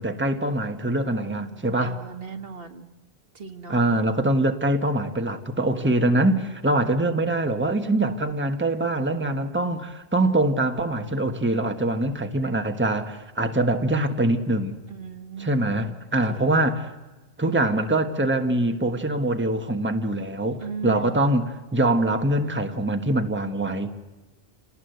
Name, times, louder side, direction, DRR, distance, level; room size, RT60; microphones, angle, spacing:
voice 1, 0.0-2.0 3.7-14.8 15.4-16.9 17.4-23.9, right 1 dB, 10° right, 6 dB, 1.4 m, -24 dB
voice 2, 1.1-2.9 3.3-3.8 15.0-16.5 20.6-21.2, right 5 dB, 65° right, 6 dB, 1.7 m, -38 dB
28.5 x 19.0 x 7.9 m, 1.2 s
omnidirectional pair, 1.1 m